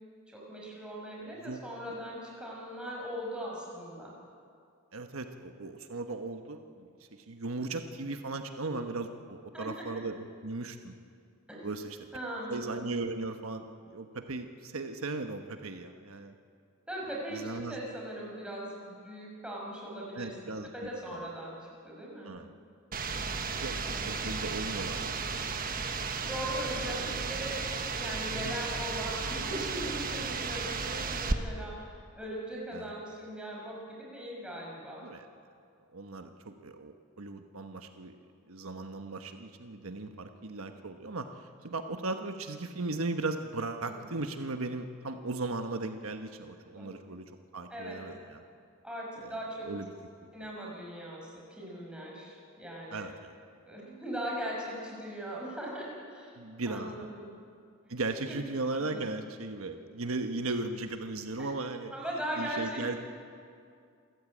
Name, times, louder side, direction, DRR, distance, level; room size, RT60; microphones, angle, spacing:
voice 1, 0.3-4.1 9.5-10.0 11.5-11.7 12.1-12.6 16.9-22.3 23.8-24.1 26.3-27.7 28.0-35.0 43.8-44.1 46.8-46.9 47.7-48.0 48.8-49.7 50.3-53.1 53.6-57.4 58.3-58.4 58.8-59.1 61.4-61.5 61.9-63.0, right 1 dB, 5° right, -3 dB, 6.0 m, -39 dB
voice 2, 4.9-11.0 11.6-12.1 12.5-16.3 17.3-17.8 20.1-20.7 21.1-21.2 22.2-22.5 23.4-23.8 24.1-25.4 26.8-27.1 28.3-28.6 32.7-32.9 35.0-35.3 35.9-38.1 38.5-47.2 47.5-48.4 49.2-49.9 50.4-50.5 52.9-53.3 56.4-57.1 57.9-61.9 62.4-63.0, right 3 dB, 85° right, 7 dB, 1.2 m, -37 dB
sound 1, 22.9-31.3, right 4 dB, 45° right, 1.3 m, -34 dB
28.0 x 14.5 x 8.6 m, 2.3 s
head